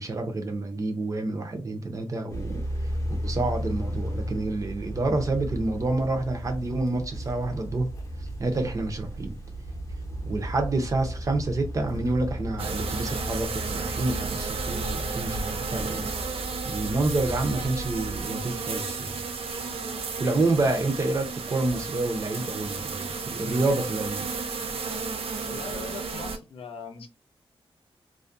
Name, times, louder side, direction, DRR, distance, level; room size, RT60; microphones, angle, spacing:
voice 1, 0.0-2.6 3.2-7.9 8.2-9.4 10.2-16.1 16.6-19.2 20.2-24.3, right 2 dB, 35° right, 0.5 m, -28 dB
sound 1, 2.3-18.2, right 1 dB, 35° left, 0.7 m, -35 dB
sound 2, 12.6-26.4, right 4 dB, 85° right, 0.5 m, -33 dB
voice 2, 25.4-27.1, left 5 dB, 75° left, 0.5 m, -40 dB
2.3 x 2.1 x 2.5 m
wide cardioid pair, 135°, 10 cm